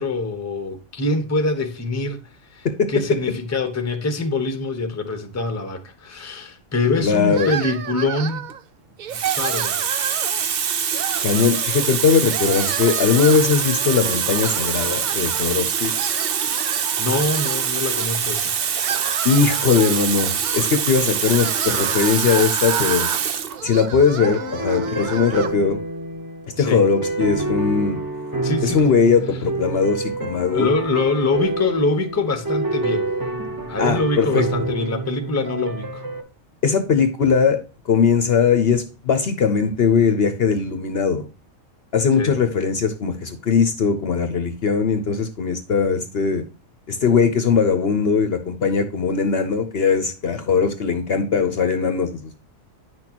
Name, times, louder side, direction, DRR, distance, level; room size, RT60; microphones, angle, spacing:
voice 1, 0.0-2.2 2.5-8.4 9.4-9.9 17.0-18.7 26.6-26.8 28.4-28.9 30.4-33.1 33.7-36.0 42.2-42.3, left 3 dB, 15° left, 0.8 m, -24 dB
voice 2, 7.0-7.5 11.2-15.9 19.2-23.1 23.6-25.8 26.6-28.0 28.6-30.7 33.8-34.5 36.6-37.6 37.9-41.3 41.9-46.4 46.9-52.4, left 5 dB, 55° left, 0.9 m, -20 dB
sound 1, 7.3-8.6 9.0-10.5 10.9-11.9 12.2-15.5 15.8-18.1 18.6-25.5, right 9 dB, 80° right, 0.4 m, -31 dB
Water tap faucet, 8.3-8.5 9.1-23.6 24.5-24.7, right 7 dB, 55° right, 0.8 m, -24 dB
sound 2, 24.2-36.2, right 2 dB, 20° right, 0.9 m, -27 dB
9.3 x 6.2 x 2.9 m
omnidirectional pair, 1.4 m